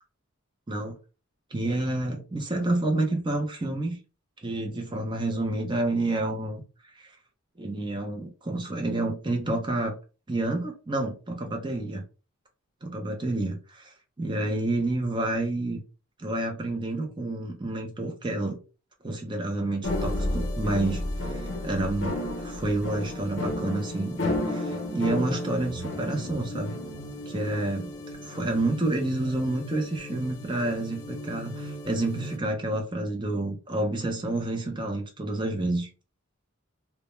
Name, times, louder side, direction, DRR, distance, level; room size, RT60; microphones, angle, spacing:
voice 1, 1.5-4.0 4.4-6.6 6.9-7.2 7.6-10.0 10.3-12.0 12.8-15.8 16.2-18.6 19.0-24.2 24.4-26.8 27.3-27.9 28.2-35.9, right 2 dB, 20° right, 0.5 m, -29 dB
sound 1, 19.8-32.4, left 1 dB, 55° left, 0.6 m, -33 dB
2.1 x 2.1 x 2.9 m
head